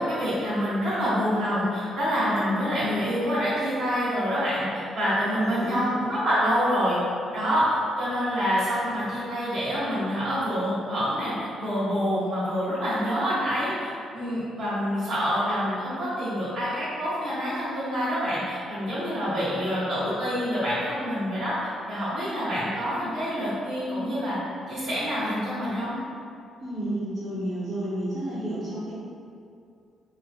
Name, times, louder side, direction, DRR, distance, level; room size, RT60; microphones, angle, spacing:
voice 1, 0.0-7.0 7.3-24.4 24.7-25.9, equal, 80° right, -10 dB, 1.4 m, -27 dB
voice 2, 5.3-5.9 26.6-28.9, right 1 dB, 45° right, -10 dB, 0.7 m, -31 dB
3.1 x 2.2 x 2.8 m, 2.4 s
cardioid pair, 90°, 0 cm